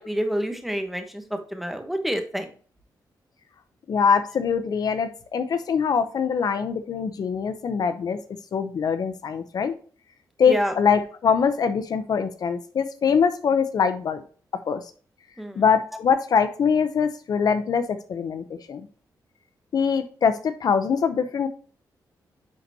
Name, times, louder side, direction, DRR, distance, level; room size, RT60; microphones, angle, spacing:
voice 1, 0.0-2.5 10.5-10.7 15.4-15.6, equal, ahead, 6 dB, 1.1 m, -28 dB
voice 2, 3.9-8.2 8.5-9.7 10.4-14.2 14.7-14.8 15.6-18.8 19.7-21.5, left 6 dB, 60° left, 10 dB, 0.6 m, -23 dB
9.8 x 4.1 x 2.8 m, 0.41 s
cardioid pair, 95°, 7 cm